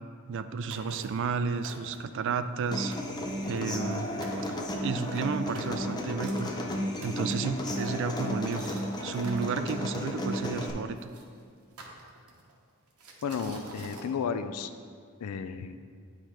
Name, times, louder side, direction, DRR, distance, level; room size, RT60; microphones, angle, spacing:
voice 1, 0.3-2.9 3.4-4.1 4.8-6.5 7.0-8.6 9.0-11.0, right 5 dB, 55° right, 10 dB, 0.3 m, -32 dB
sound 1, 0.7-1.2 1.6-2.2 2.6-2.7 2.9-4.0 4.2-4.5 5.0-9.5 10.3-11.2 11.8-12.5 13.0-14.1, right 2 dB, 80° right, 0.9 m, -47 dB
Human voice / Acoustic guitar, 2.7-10.7, left 1 dB, 20° left, 0.5 m, -33 dB
voice 2, 13.2-14.7 15.2-15.8, left 6 dB, 85° left, 10 dB, 0.4 m, -33 dB
9.6 x 3.2 x 4.4 m, 2.1 s
head